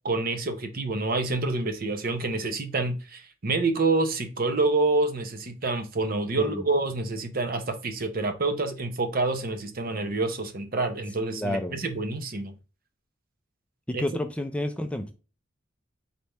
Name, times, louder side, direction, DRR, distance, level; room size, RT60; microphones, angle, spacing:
voice 1, 0.0-12.5 13.9-14.0, right 3 dB, 45° right, 0.7 m, -27 dB
voice 2, 11.3-11.8 13.9-15.1, left 1 dB, 5° left, 0.4 m, -30 dB
4.1 x 3.4 x 3.3 m
head